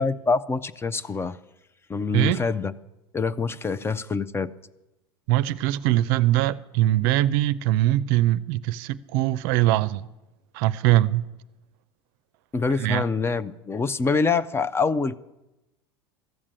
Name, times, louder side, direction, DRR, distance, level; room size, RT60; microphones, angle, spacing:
voice 1, 0.0-1.4 1.9-2.7 3.1-4.5 12.5-15.1, left 4 dB, 20° left, 0.5 m, -25 dB
voice 2, 5.3-10.1 10.5-11.2 12.8-13.1, right 15 dB, 60° right, 0.5 m, -22 dB
14.0 x 7.4 x 8.8 m
hypercardioid pair, 85°, 13 cm